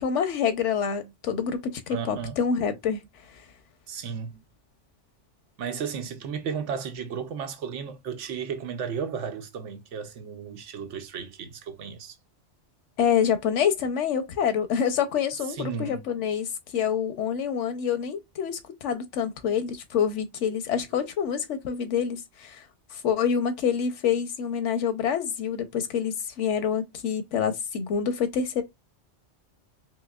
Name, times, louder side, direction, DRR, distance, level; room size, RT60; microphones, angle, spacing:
voice 1, 0.0-3.0 13.0-22.6 22.9-28.6, left 7 dB, 85° left, 1.1 m, -27 dB
voice 2, 1.9-2.4 3.9-4.4 5.6-12.2 15.5-16.1, right 6 dB, 90° right, 1.1 m, -34 dB
4.3 x 3.0 x 2.3 m
omnidirectional pair, 1.2 m